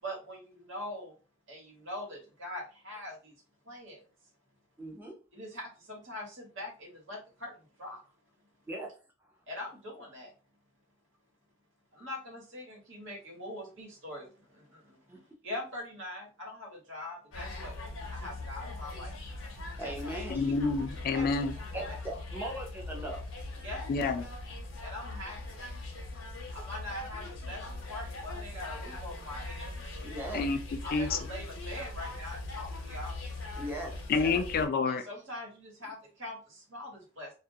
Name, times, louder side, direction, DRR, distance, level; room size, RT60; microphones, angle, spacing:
voice 1, 0.0-1.1 1.5-3.4 3.6-4.0 5.3-8.0 9.5-10.3 11.9-17.8 18.1-19.2 20.1-20.5 21.1-21.3 21.9-22.0 23.6-23.9 24.8-25.6 26.5-29.7 30.8-33.2 34.9-37.3, left 1 dB, 70° right, -2 dB, 1.2 m, -43 dB
voice 2, 4.8-5.2 8.7-8.9 15.1-15.2 19.8-20.4 21.2-21.3 21.7-23.3 30.0-30.6 33.6-34.4 35.8-35.9, right 1 dB, 10° right, -1 dB, 0.5 m, -39 dB
sound 1, 17.3-34.7, left 2 dB, 85° left, 0.6 m, -41 dB
voice 3, 20.3-21.5 23.9-24.2 30.3-30.6 30.9-31.2 34.1-35.0, left 4 dB, 50° left, 8 dB, 0.3 m, -28 dB
2.3 x 2.1 x 2.6 m, 0.35 s
head